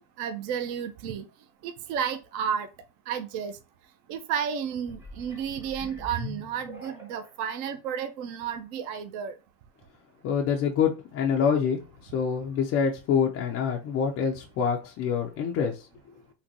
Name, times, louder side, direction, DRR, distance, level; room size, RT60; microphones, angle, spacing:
voice 1, 0.2-1.2 1.6-2.7 3.1-3.6 4.1-9.4, right 8 dB, 45° right, 0.6 m, -32 dB
sound 1, 4.8-7.4 8.0-8.1, right 1 dB, 5° right, 0.7 m, -41 dB
voice 2, 10.2-15.9, left 7 dB, 30° left, 0.4 m, -26 dB
3.9 x 2.1 x 2.8 m
supercardioid pair, 135°, 47 cm